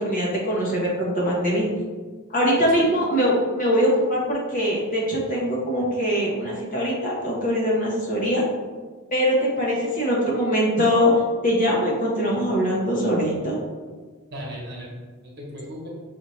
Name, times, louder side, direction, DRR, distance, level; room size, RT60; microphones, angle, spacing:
voice 1, 0.0-1.7 2.3-8.4 9.1-11.1 11.4-13.6, equal, 40° left, -4 dB, 1.1 m, -22 dB
voice 2, 14.3-15.9, equal, 50° right, -3 dB, 1.2 m, -37 dB
6.1 x 2.8 x 3.1 m, 1.4 s
head